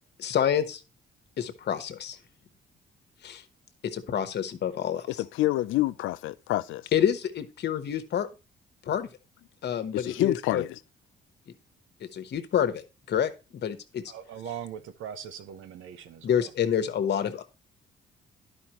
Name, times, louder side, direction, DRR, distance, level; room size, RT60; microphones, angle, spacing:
voice 1, 0.2-0.8 1.4-2.2 3.2-3.4 3.8-5.1 6.9-8.3 8.9-9.1 9.6-10.6 12.1-12.8 13.1-14.0 16.2-17.4, left 9 dB, 60° left, 1.0 m, -28 dB
voice 2, 5.2-6.8 9.9-10.8, left 16 dB, 85° left, 0.4 m, -27 dB
voice 3, 14.1-16.5, right 8 dB, 80° right, 0.9 m, -40 dB
11.0 x 5.3 x 2.9 m
cardioid pair, 90°, 20 cm